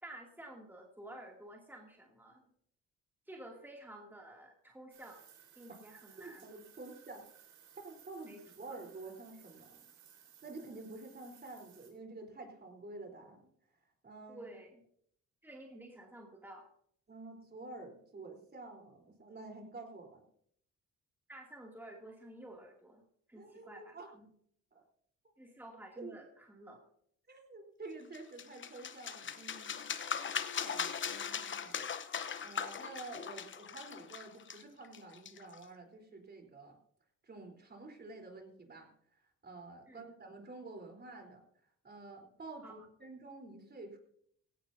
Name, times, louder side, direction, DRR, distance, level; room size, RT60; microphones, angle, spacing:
voice 1, 0.0-2.4 3.3-5.2 5.6-6.5 8.3-8.4 8.7-8.8 14.3-14.8 15.4-16.7 21.3-23.0 23.3-24.3 25.4-26.8 30.2-30.4 39.9-40.0 42.6-42.7, right 1 dB, 5° right, -1 dB, 2.6 m, -51 dB
sound 1, 4.9-11.9, right 8 dB, 85° right, 4.6 m, -60 dB
voice 2, 6.2-7.2 7.8-9.8 10.4-13.4 14.0-14.5 17.1-20.2 23.3-24.1 24.7-24.8 26.0-26.2 27.3-30.1 30.6-32.0 32.4-36.8 37.2-38.9 39.4-41.4 41.8-44.0, right 3 dB, 35° right, 3 dB, 3.9 m, -49 dB
sound 2, 28.1-35.6, left 7 dB, 40° left, 0.9 m, -40 dB
17.0 x 16.5 x 2.7 m, 0.67 s
cardioid pair, 90°, 30 cm